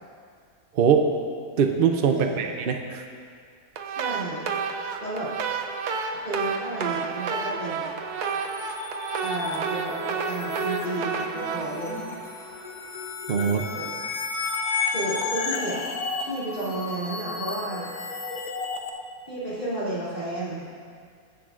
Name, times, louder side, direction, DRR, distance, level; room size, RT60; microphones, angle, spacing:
voice 1, 0.7-1.1 1.6-3.0 13.3-13.6, right 7 dB, 65° right, 4 dB, 0.5 m, -22 dB
voice 2, 2.1-2.5 3.8-4.4 5.0-5.3 6.1-8.0 9.2-12.0 13.7-13.9 14.9-15.8 16.2-17.9 19.3-20.7, right 1 dB, 30° left, -9 dB, 3.0 m, -32 dB
sound 1, 3.8-12.9, right 5 dB, 90° right, 1.2 m, -31 dB
sound 2, 8.2-18.9, left 4 dB, 70° left, 1.3 m, -32 dB
20.5 x 7.6 x 2.5 m, 2.2 s
omnidirectional pair, 1.6 m